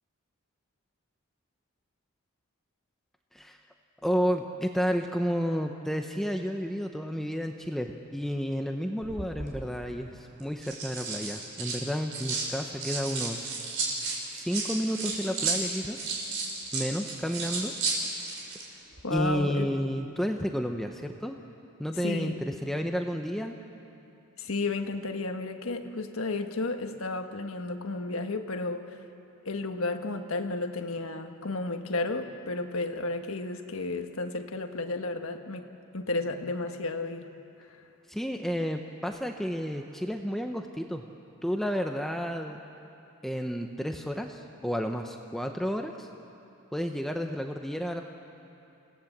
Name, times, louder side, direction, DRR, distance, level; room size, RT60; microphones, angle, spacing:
voice 1, 4.0-13.5 14.3-16.0 16.7-17.7 19.1-21.4 21.8-23.5 38.1-41.0 41.4-42.6 43.2-46.1 46.7-48.0, equal, ahead, 4 dB, 0.7 m, -31 dB
sound 1, 9.0-9.5 10.4-12.5 12.8-18.7 18.9-19.2, right 4 dB, 70° right, 4.4 m, -33 dB
voice 2, 19.0-19.7 22.0-22.4 24.4-28.8 29.4-35.7 35.9-37.3, left 3 dB, 75° left, 6 dB, 1.4 m, -32 dB
29.0 x 17.5 x 7.3 m, 2.7 s
head